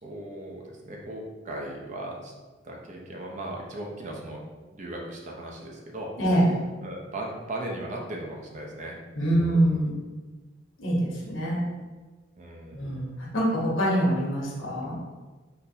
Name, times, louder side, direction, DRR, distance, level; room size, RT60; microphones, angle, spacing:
voice 1, 0.0-2.3 2.6-4.4 4.7-6.1 6.8-9.0 12.4-12.9, right 1 dB, 40° right, -1 dB, 0.6 m, -37 dB
voice 2, 6.2-6.5 9.1-10.0 10.8-11.7 12.7-15.0, right 1 dB, 90° left, -4 dB, 1.1 m, -25 dB
3.8 x 2.6 x 2.8 m, 1.3 s
head